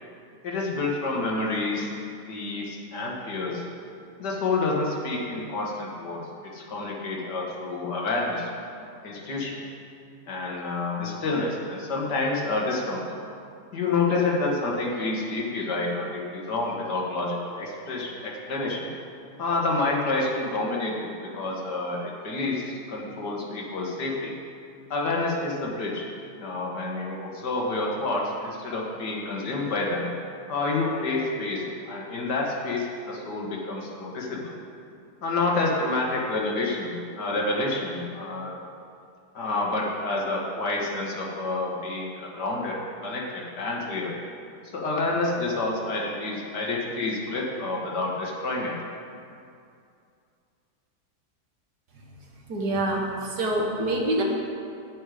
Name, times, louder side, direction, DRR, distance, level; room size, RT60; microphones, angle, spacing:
voice 1, 0.4-1.9 2.2-3.6 4.2-6.2 6.5-8.5 9.0-9.6 10.3-13.2 13.7-18.9 19.4-24.3 24.9-26.1 26.4-30.1 30.5-34.5 35.2-38.6 39.3-44.1 44.6-48.8, left 2 dB, 80° left, -2 dB, 2.1 m, -28 dB
voice 2, 52.5-54.2, right 1 dB, 75° right, -1 dB, 2.0 m, -26 dB
9.8 x 9.2 x 5.0 m, 2.4 s
omnidirectional pair, 1.8 m